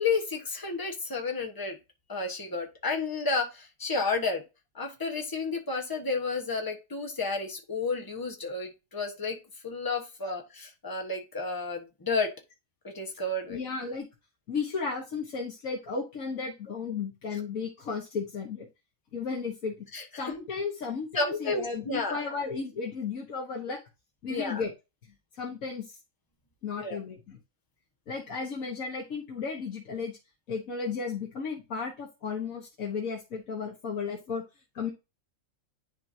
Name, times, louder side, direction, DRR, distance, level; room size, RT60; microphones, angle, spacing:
voice 1, 0.0-1.8 2.1-4.4 4.7-9.4 9.6-12.3 12.8-13.6 19.9-20.0 21.1-22.2 24.3-24.6 26.8-27.0, left 4 dB, 15° left, 2 dB, 1.3 m, -31 dB
voice 2, 13.5-14.1 14.5-18.7 19.1-19.9 20.2-23.8 24.2-24.7 25.4-26.0 26.6-27.4 28.1-30.2 30.5-34.4 34.8-34.9, left 5 dB, 80° left, -1 dB, 1.7 m, -34 dB
10.5 x 4.4 x 2.8 m, 0.26 s
omnidirectional pair, 1.4 m